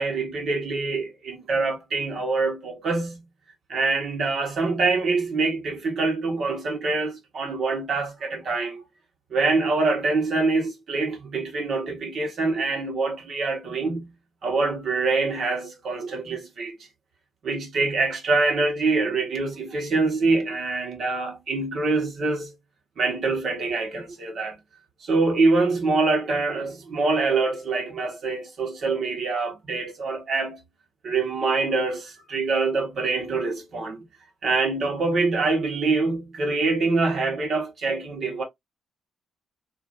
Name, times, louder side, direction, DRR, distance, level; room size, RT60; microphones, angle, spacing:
voice 1, 0.0-3.2 3.7-8.8 9.3-14.1 14.4-16.8 17.4-22.5 23.0-24.6 25.0-30.6 31.0-34.0 34.4-38.4, right 3 dB, 55° right, 1.4 m, -25 dB
2.7 x 2.6 x 2.6 m
cardioid pair, 90°, 0 cm